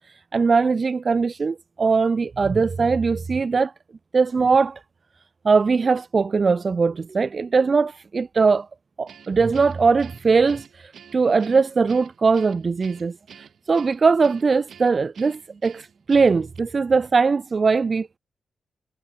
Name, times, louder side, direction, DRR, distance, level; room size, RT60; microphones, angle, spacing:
voice 1, 0.3-3.7 4.1-4.8 5.4-8.7 9.0-18.2, right 4 dB, 40° right, 0.3 m, -20 dB
Guitar, 9.1-16.6, right 8 dB, 75° right, 4.9 m, -48 dB
wide cardioid pair, 110°, 0 cm